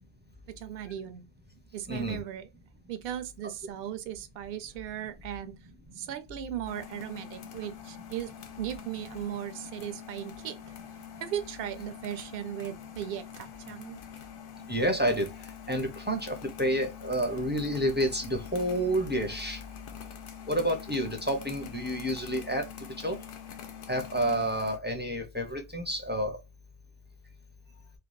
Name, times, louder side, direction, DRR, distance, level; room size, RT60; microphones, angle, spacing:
voice 1, 0.5-1.3 1.7-2.5 2.9-5.5 5.9-10.8 11.2-14.0, right 10 dB, 70° right, 0.8 m, -37 dB
voice 2, 1.9-2.2 14.7-15.3 15.7-19.6 20.5-22.7 23.0-23.2 23.9-26.4, equal, 15° right, 0.5 m, -29 dB
sound 1, 6.7-24.8, left 8 dB, 65° left, 0.7 m, -45 dB
3.1 x 2.2 x 2.4 m
omnidirectional pair, 1.1 m